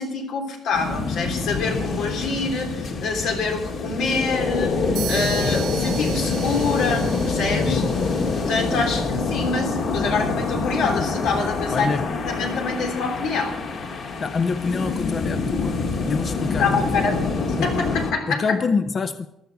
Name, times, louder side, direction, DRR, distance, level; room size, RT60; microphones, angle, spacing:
voice 1, 0.0-7.9 8.3-12.0 12.3-13.6 16.6-18.4, left 4 dB, 85° left, 3.3 m, -26 dB
sound 1, 0.7-18.1, left 4 dB, 60° left, 2.2 m, -26 dB
sound 2, 5.0-8.7, right 11 dB, 65° right, 0.8 m, -36 dB
voice 2, 11.7-12.0 14.2-17.1 17.6-17.7 18.3-19.3, left 4 dB, 35° left, 0.5 m, -26 dB
15.0 x 12.0 x 4.8 m
cardioid pair, 140°, 0 cm